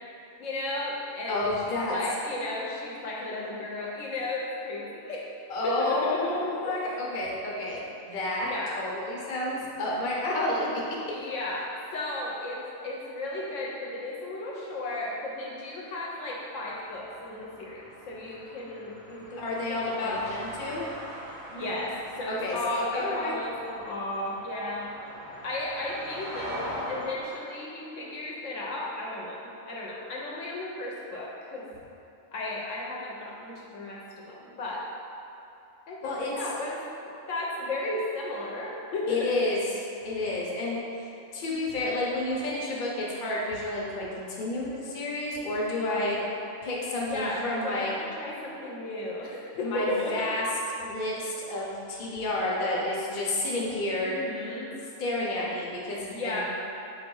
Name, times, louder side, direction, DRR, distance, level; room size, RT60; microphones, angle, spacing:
voice 1, 0.4-5.3 5.6-6.8 8.4-8.7 11.1-20.7 21.5-24.9 25.4-26.6 26.9-31.7 32.3-34.8 35.9-36.8 37.3-39.3 45.9-46.3 47.0-50.1 54.0-54.7 56.1-56.4, left 2 dB, 70° left, -4 dB, 0.9 m, -34 dB
voice 2, 1.3-2.0 5.5-8.5 8.7-10.8 19.4-20.8 22.3-23.4 36.0-36.3 39.1-41.1 41.3-46.2 46.6-47.9 49.6-50.4 50.8-54.2 55.0-56.4, left 2 dB, 50° left, -4 dB, 0.8 m, -30 dB
sound 1, 16.6-27.4, equal, 35° right, 0.6 m, -42 dB
4.0 x 2.6 x 4.6 m, 2.9 s
omnidirectional pair, 1.4 m